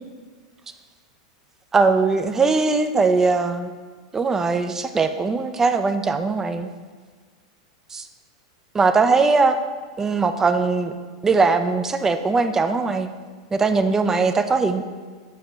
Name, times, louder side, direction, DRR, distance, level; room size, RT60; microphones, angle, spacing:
voice 1, 1.7-3.7 4.1-6.7 7.9-8.1 8.7-9.6 10.0-10.9 11.2-13.1 13.5-14.8, right 4 dB, 15° right, 9 dB, 0.4 m, -20 dB
7.4 x 2.9 x 5.5 m, 1.5 s
hypercardioid pair, 115°, 3 cm